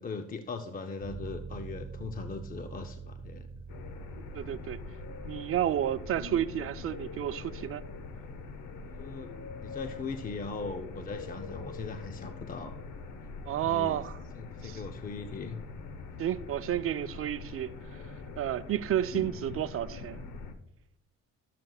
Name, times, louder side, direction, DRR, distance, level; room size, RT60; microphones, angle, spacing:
voice 1, 0.0-3.6 8.8-9.3 9.6-12.8 13.6-14.0 14.3-15.6, left 4 dB, 30° left, 0.6 m, -39 dB
sound 1, 1.0-13.5 13.9-14.0, right 5 dB, 30° right, 1.6 m, -48 dB
sound 2, 3.7-20.5, left 4 dB, 85° left, 0.9 m, -43 dB
voice 2, 4.3-4.8 5.2-7.8 13.4-14.2 14.6-14.8 16.2-18.0 18.4-20.2, right 11 dB, 50° right, 0.4 m, -31 dB
12.0 x 7.5 x 2.3 m
cardioid pair, 90°, 30 cm